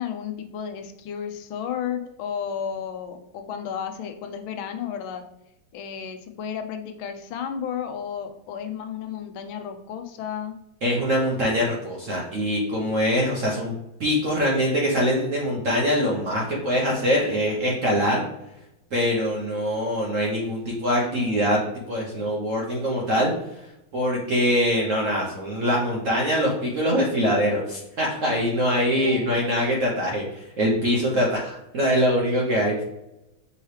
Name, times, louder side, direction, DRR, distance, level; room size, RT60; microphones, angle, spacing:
voice 1, 0.0-5.2 5.7-10.6 28.9-29.4, left 8 dB, 80° left, 6 dB, 1.4 m, -33 dB
voice 2, 10.8-13.7 14.0-18.2 18.9-21.6 21.9-23.3 23.9-32.8, equal, 60° right, -3 dB, 0.8 m, -23 dB
5.5 x 3.0 x 3.1 m, 0.88 s
omnidirectional pair, 2.2 m